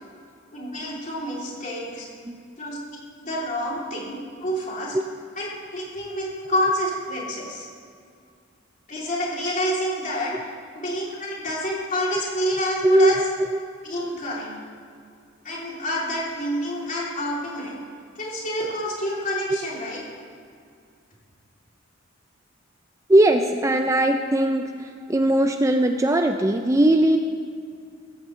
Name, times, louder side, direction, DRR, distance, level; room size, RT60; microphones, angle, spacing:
voice 1, 0.5-2.1 2.6-4.9 5.4-7.7 8.9-10.3 10.7-13.2 13.8-14.6 15.4-17.8 18.2-20.0, equal, 40° left, -4 dB, 3.1 m, -28 dB
voice 2, 12.8-13.2 23.1-27.2, right 1 dB, 15° right, 5 dB, 0.4 m, -19 dB
16.0 x 14.5 x 3.2 m, 2.3 s
head